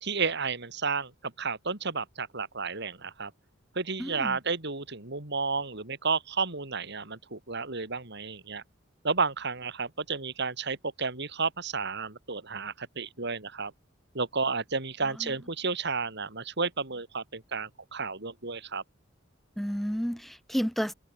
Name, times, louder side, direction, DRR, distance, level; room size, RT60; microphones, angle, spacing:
voice 1, 0.0-3.3 3.8-8.6 9.0-13.7 14.1-18.8, right 4 dB, 60° right, 3.7 m, -32 dB
voice 2, 4.0-4.4 15.2-15.3 19.6-20.9, equal, ahead, 4.7 m, -31 dB
head